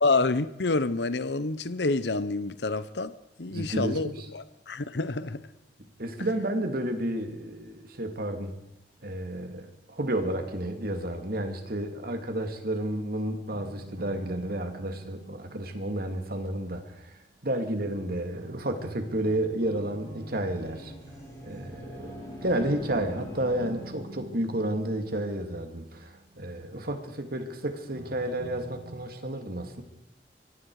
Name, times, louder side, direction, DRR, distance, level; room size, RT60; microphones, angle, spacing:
voice 1, 0.0-5.5, left 3 dB, 70° left, 0.9 m, -28 dB
voice 2, 3.5-4.1 6.0-8.6 9.0-20.9 21.4-22.1 22.4-29.8, right 1 dB, 60° right, 2.6 m, -31 dB
sound 1, 13.5-17.5 18.3-27.2 27.9-29.1, right 2 dB, 85° right, 1.7 m, -47 dB
sound 2, 19.5-24.2, equal, 20° left, 7.8 m, -44 dB
24.5 x 23.0 x 4.9 m
head